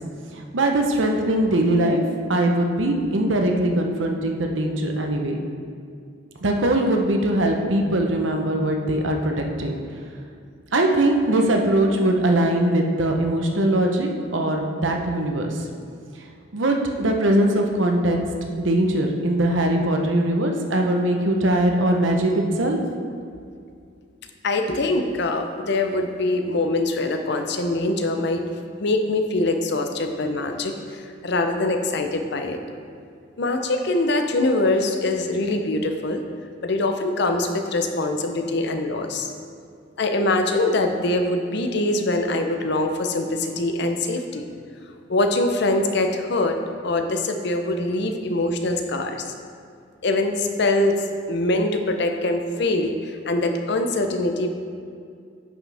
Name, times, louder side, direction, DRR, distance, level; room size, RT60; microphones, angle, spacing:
voice 1, 0.4-2.0 2.3-5.4 6.4-9.8 10.7-15.6 16.5-18.2 18.6-22.8, right 1 dB, 80° right, 2 dB, 0.9 m, -21 dB
voice 2, 24.4-28.4 28.8-32.6 33.4-36.2 36.6-39.3 40.0-44.5 45.1-49.3 50.0-51.0 51.3-54.5, left 2 dB, 60° left, 5 dB, 0.7 m, -23 dB
9.6 x 6.1 x 3.4 m, 2.3 s
head